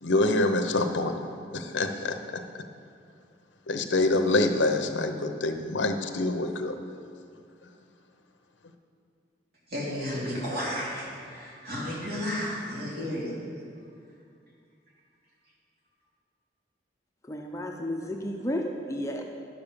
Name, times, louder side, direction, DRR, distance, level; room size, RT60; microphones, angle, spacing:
voice 1, 0.0-1.1 1.5-2.2 3.7-6.8, left 2 dB, 85° left, 6 dB, 0.9 m, -25 dB
voice 2, 9.7-13.4, equal, 55° right, -6 dB, 3.5 m, -33 dB
voice 3, 17.2-19.2, left 1 dB, 15° left, 1 dB, 0.7 m, -32 dB
11.5 x 7.1 x 6.9 m, 2.3 s
head